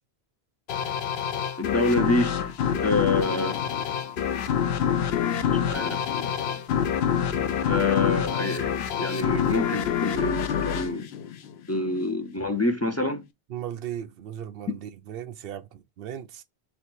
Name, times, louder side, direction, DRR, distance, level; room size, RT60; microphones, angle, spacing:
sound 1, 0.7-11.9, left 8 dB, 80° left, 0.8 m, -27 dB
voice 1, 1.6-2.5 2.8-3.6 5.6-6.5 7.6-8.7 9.0-11.1 11.7-13.2, left 2 dB, 25° left, 0.3 m, -27 dB
voice 2, 13.5-16.4, right 10 dB, 65° right, 0.7 m, -37 dB
3.2 x 3.0 x 4.3 m
omnidirectional pair, 1.1 m